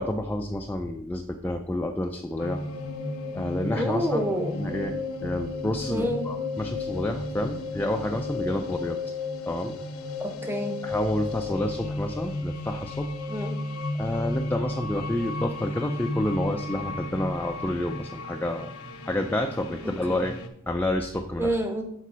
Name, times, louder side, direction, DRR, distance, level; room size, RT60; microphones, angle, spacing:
voice 1, 0.0-2.6 3.3-4.2 4.5-5.0 5.2-9.0 9.4-9.8 10.8-13.1 14.0-18.7 19.0-20.4 20.7-21.6, left 1 dB, 10° left, 3 dB, 0.3 m, -29 dB
sound 1, 2.4-20.5, left 2 dB, 85° left, 0.8 m, -33 dB
voice 2, 3.7-4.6 5.9-6.3 10.2-10.8 13.3-13.5 20.1-20.2 21.4-21.8, equal, 10° right, 5 dB, 0.8 m, -28 dB
6.7 x 4.1 x 6.1 m, 0.76 s
head